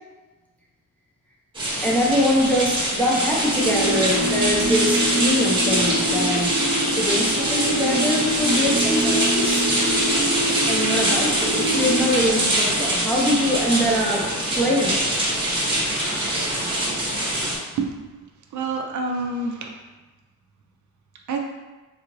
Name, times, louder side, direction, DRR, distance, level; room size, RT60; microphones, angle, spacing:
sound 1, 1.5-17.6, right 1 dB, 15° right, 0.9 m, -23 dB
voice 1, 1.8-6.6 6.9-9.7 10.6-15.1, left 1 dB, 5° left, -5 dB, 0.6 m, -23 dB
sound 2, 3.5-12.0, right 1 dB, 70° left, 1.3 m, -26 dB
voice 2, 18.5-19.7 21.3-21.4, right 3 dB, 60° right, 2 dB, 0.5 m, -27 dB
3.8 x 2.4 x 3.0 m, 1.2 s
cardioid pair, 135°, 33 cm